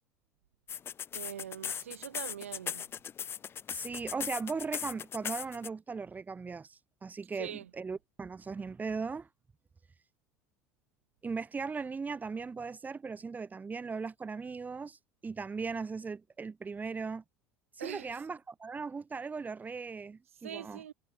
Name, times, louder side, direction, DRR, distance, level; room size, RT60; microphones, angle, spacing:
sound 1, 0.7-5.7, left 8 dB, 35° left, 0.8 m, -38 dB
voice 1, 1.1-2.8 7.4-7.7 17.8-18.2 20.4-20.9, right 10 dB, 85° right, 1.8 m, -42 dB
voice 2, 3.7-9.3 11.2-17.2 17.8-20.8, right 4 dB, 25° right, 6.2 m, -38 dB
hypercardioid pair, 75°, 7 cm